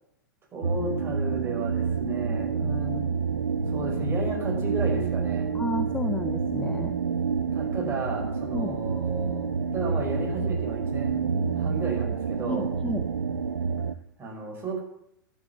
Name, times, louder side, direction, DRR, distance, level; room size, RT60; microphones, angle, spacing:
voice 1, 0.5-3.2 3.7-5.5 7.5-9.5 9.7-12.7 14.2-14.8, right 3 dB, 20° right, 0 dB, 5.6 m, -34 dB
sound 1, 0.6-13.9, right 5 dB, 75° right, 0.6 m, -28 dB
voice 2, 5.5-7.0 7.7-7.8 8.5-8.8 12.5-13.1, left 3 dB, 10° left, 8 dB, 0.8 m, -32 dB
12.5 x 9.7 x 8.9 m, 0.76 s
figure-of-eight pair, 95°, 11 cm